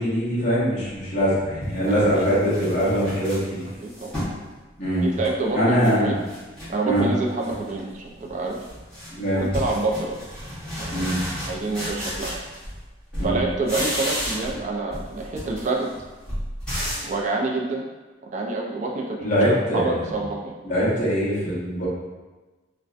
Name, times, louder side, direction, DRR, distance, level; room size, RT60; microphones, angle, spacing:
voice 1, 0.0-3.7 4.8-5.1 5.5-6.2 6.8-7.1 9.1-9.5 10.9-11.4 13.2-13.4 19.2-20.1 20.6-21.9, equal, 40° left, -9 dB, 0.8 m, -22 dB
sound 1, 1.0-1.1 1.6-4.4 4.8-6.0 6.2-7.1 7.4-7.8 8.1-12.9 13.1-14.6 14.9-17.2, equal, 5° left, 1.0 m, -33 dB
voice 2, 1.8-2.3 3.8-4.1 5.0-6.2 6.7-8.6 9.3-10.2 10.8-11.0 11.4-12.3 13.2-15.9 17.1-17.8 18.3-20.5, right 3 dB, 40° right, -1 dB, 0.3 m, -27 dB
2.5 x 2.0 x 2.4 m, 1.2 s
head